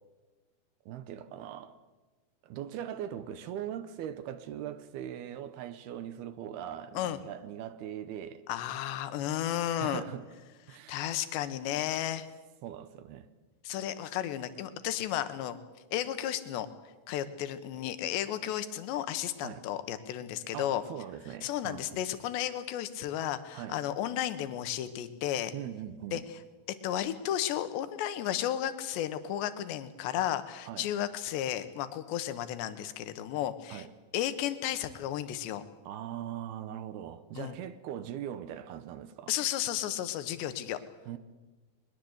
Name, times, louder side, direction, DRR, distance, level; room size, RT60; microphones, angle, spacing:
voice 1, 0.9-1.8 2.4-8.5 9.8-10.3 10.7-11.1 12.6-13.3 19.4-19.6 20.5-22.0 23.5-23.8 25.5-26.3 30.7-30.9 33.7-33.9 35.9-39.3 41.1-41.2, right 10 dB, 75° right, 2.8 m, -40 dB
voice 2, 8.5-10.0 10.7-12.3 13.6-15.6 15.9-16.7 17.1-20.8 21.4-25.5 26.1-26.2 26.8-33.9 34.1-35.6 37.4-37.6 39.3-40.8, left 11 dB, 90° left, 3.4 m, -33 dB
22.0 x 21.0 x 8.1 m
omnidirectional pair, 4.9 m